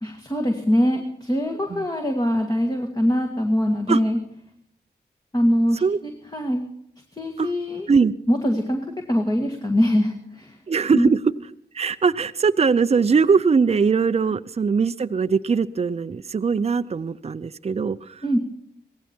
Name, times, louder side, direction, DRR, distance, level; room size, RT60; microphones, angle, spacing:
voice 1, 0.0-4.2 5.3-6.6 7.1-7.9 8.3-8.8 9.1-10.6 10.9-11.1 18.2-18.4, equal, 20° left, 2 dB, 1.9 m, -22 dB
voice 2, 10.7-11.2 11.7-18.2, right 5 dB, 35° right, 13 dB, 0.6 m, -21 dB
17.0 x 15.0 x 4.5 m, 0.75 s
cardioid pair, 55°, 18 cm